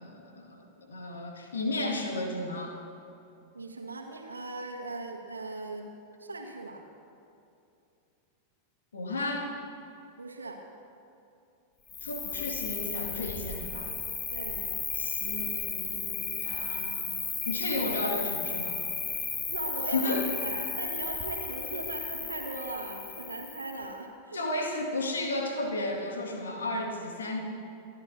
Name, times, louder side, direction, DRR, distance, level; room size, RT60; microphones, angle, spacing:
voice 1, 0.0-2.8 8.9-9.5 12.0-13.9 14.9-17.0 17.5-18.8 19.9-20.3 24.3-27.4, left 2 dB, 70° left, 1 dB, 2.0 m, -33 dB
voice 2, 3.5-5.9 6.2-6.8 10.2-10.6 14.3-14.7 19.4-20.1 20.4-24.4, right 2 dB, 75° right, 2 dB, 1.6 m, -38 dB
Cricket, 11.9-23.8, left 5 dB, 25° left, 1.6 m, -34 dB
26.0 x 11.5 x 2.7 m, 2.6 s
figure-of-eight pair, 90°, 0 cm